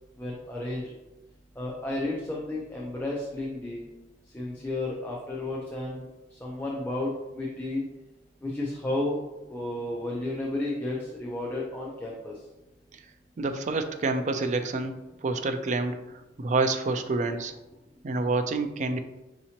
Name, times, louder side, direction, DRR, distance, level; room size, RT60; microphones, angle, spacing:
voice 1, 0.2-0.9 1.6-3.8 4.3-6.1 6.3-7.8 8.4-9.2 9.5-12.3, left 2 dB, 10° left, -4 dB, 0.5 m, -32 dB
voice 2, 13.4-15.0 15.2-16.0 16.4-17.6 18.0-19.0, right 3 dB, 40° right, 8 dB, 0.4 m, -27 dB
5.9 x 2.9 x 2.8 m, 1.0 s
head